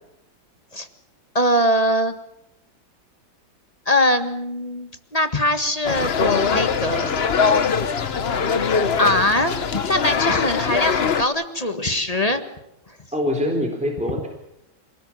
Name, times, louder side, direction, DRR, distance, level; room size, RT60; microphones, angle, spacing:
voice 1, 1.3-2.2 3.8-7.1 9.0-9.5 9.8-12.4, left 1 dB, 20° left, 8 dB, 1.6 m, -21 dB
sound 1, 5.8-11.2, left 6 dB, 40° left, 1.0 m, -22 dB
voice 2, 13.1-14.3, left 1 dB, 5° right, 2 dB, 4.0 m, -24 dB
27.5 x 19.0 x 7.5 m, 0.82 s
omnidirectional pair, 2.1 m